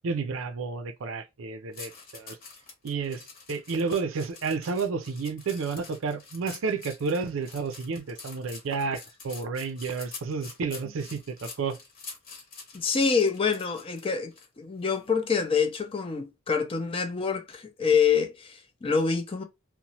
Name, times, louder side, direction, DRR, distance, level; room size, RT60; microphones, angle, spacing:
voice 1, 0.0-2.4 2.8-3.2 3.5-11.8, right 4 dB, 70° right, 0.4 m, -31 dB
sound 1, 1.7-14.4 14.9-15.1, left 4 dB, 45° left, 0.9 m, -46 dB
voice 2, 12.7-19.4, left 5 dB, 25° left, 0.4 m, -26 dB
2.9 x 2.1 x 2.7 m
head